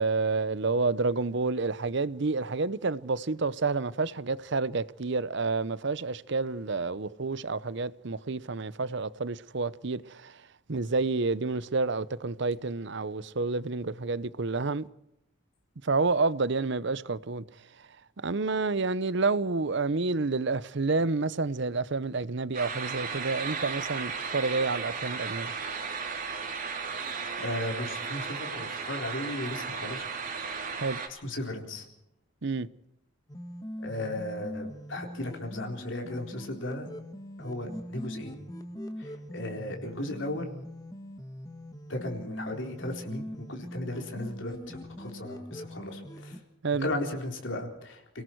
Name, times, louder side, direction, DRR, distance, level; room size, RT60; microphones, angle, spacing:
voice 1, 0.0-10.4 10.7-14.9 15.8-17.4 18.2-25.5 30.8-31.0 32.4-32.7 46.6-46.9, right 3 dB, 55° right, 0.8 m, -29 dB
sound 1, 22.5-31.1, right 5 dB, 40° right, 3.2 m, -35 dB
voice 2, 27.1-30.1 31.1-31.9 33.8-36.9 37.4-38.4 39.0-40.5 41.9-46.4 46.8-48.0, left 1 dB, 60° left, 4.0 m, -36 dB
sound 2, 33.3-46.4, equal, 20° left, 1.8 m, -42 dB
29.5 x 18.5 x 4.7 m
head